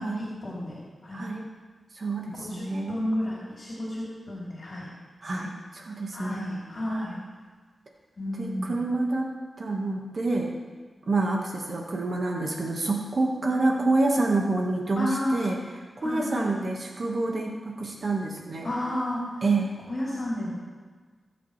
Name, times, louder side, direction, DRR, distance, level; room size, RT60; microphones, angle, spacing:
voice 1, 0.0-1.2 2.2-4.9 5.2-5.5 6.1-7.2 8.2-8.8 14.9-15.4 16.0-16.5 18.6-19.4 19.9-20.5, left 1 dB, 45° left, -6 dB, 3.1 m, -32 dB
voice 2, 1.1-1.5 1.9-3.0 5.2-6.4 6.9-7.1 8.4-9.3 9.6-10.5 11.1-15.6 16.0-18.7 19.4-19.7, right 2 dB, 55° right, 0 dB, 1.6 m, -27 dB
19.0 x 7.9 x 3.3 m, 1.4 s
wide cardioid pair, 80°, 0 cm